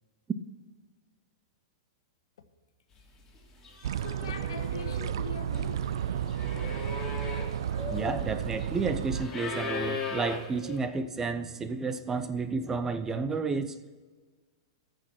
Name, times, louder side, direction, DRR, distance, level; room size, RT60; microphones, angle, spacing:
sound 1, 3.2-3.4 3.6-10.8, left 4 dB, 20° left, 2.9 m, -39 dB
voice 1, 3.6-6.4, left 7 dB, 75° left, 1.3 m, -44 dB
sound 2, 3.8-9.3, right 10 dB, 70° right, 0.4 m, -32 dB
voice 2, 7.9-13.8, right 4 dB, 15° right, 0.7 m, -31 dB
14.5 x 6.4 x 5.8 m
hypercardioid pair, 125°, 3 cm